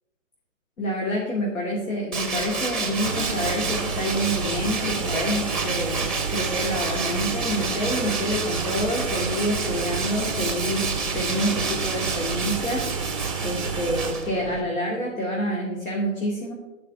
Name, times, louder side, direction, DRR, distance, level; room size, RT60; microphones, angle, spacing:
voice 1, 0.8-13.1 13.4-16.5, equal, 80° left, -3 dB, 3.1 m, -28 dB
Tools, 2.1-14.6, right 4 dB, ahead, 0.7 m, -30 dB
sound 1, 3.0-14.1, right 5 dB, 25° right, 0.4 m, -31 dB
16.5 x 5.9 x 3.7 m, 1.1 s
hypercardioid pair, 145°, 40 cm